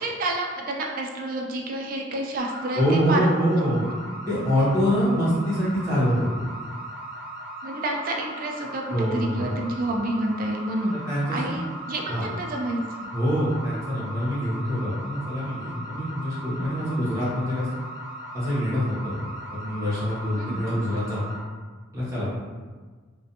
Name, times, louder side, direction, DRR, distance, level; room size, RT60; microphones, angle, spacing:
voice 1, 0.0-3.3 3.9-4.0 7.6-11.0 11.3-13.1 20.4-20.6, right 1 dB, 45° right, 1 dB, 0.3 m, -29 dB
sound 1, 2.4-21.4, right 1 dB, 70° left, 1.0 m, -38 dB
voice 2, 2.7-3.8 4.3-6.4 8.9-9.5 10.9-11.6 12.1-12.3 13.1-17.7 18.3-19.2 19.5-21.2 21.9-22.3, equal, 15° right, -9 dB, 0.9 m, -25 dB
2.4 x 2.1 x 2.7 m, 1.4 s
head